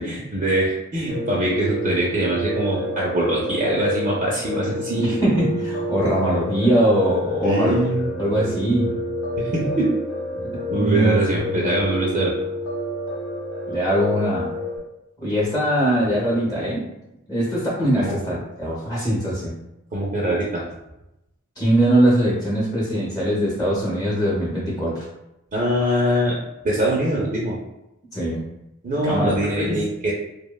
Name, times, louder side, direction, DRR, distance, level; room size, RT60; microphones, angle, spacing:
voice 1, 0.0-5.2 7.4-8.1 9.4-9.9 10.7-12.3 18.0-18.2 19.9-20.6 25.5-26.4 26.6-27.6 28.8-30.1, right 1 dB, 35° right, -5 dB, 0.4 m, -23 dB
Piano, 1.1-14.8, left 1 dB, 85° left, 0.8 m, -29 dB
voice 2, 5.0-7.8 8.2-8.9 10.3-11.2 11.5-11.7 13.7-14.5 15.2-16.8 17.3-19.6 21.6-25.1 28.1-28.4 29.0-29.3 29.6-29.8, right 1 dB, 20° left, -6 dB, 0.7 m, -21 dB
2.9 x 2.1 x 2.2 m, 0.90 s
head